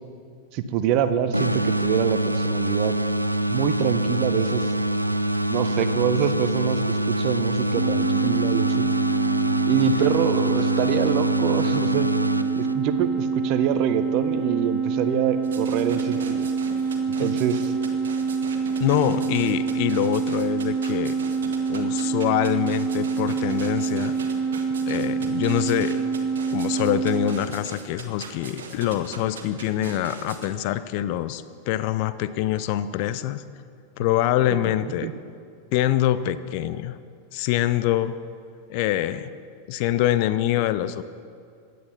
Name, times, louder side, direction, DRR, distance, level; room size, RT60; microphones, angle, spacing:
voice 1, 0.5-2.9 3.5-4.7 5.5-8.9 9.7-12.1 12.5-16.5 17.1-17.7 34.8-35.1, right 9 dB, 45° right, 11 dB, 0.8 m, -25 dB
sound 1, 1.3-13.1, right 1 dB, 90° right, 0.4 m, -25 dB
sound 2, 7.8-27.3, right 5 dB, 5° right, 2.6 m, -26 dB
sound 3, 15.4-30.5, right 4 dB, 65° right, 1.6 m, -39 dB
voice 2, 18.8-21.2 21.7-24.1 24.8-26.0 26.5-33.4 34.0-35.1 35.7-37.0 37.3-38.1 38.7-39.3 39.7-41.0, left 13 dB, 45° left, 14 dB, 0.5 m, -25 dB
15.5 x 9.3 x 5.7 m, 2.3 s
figure-of-eight pair, 90°, 0 cm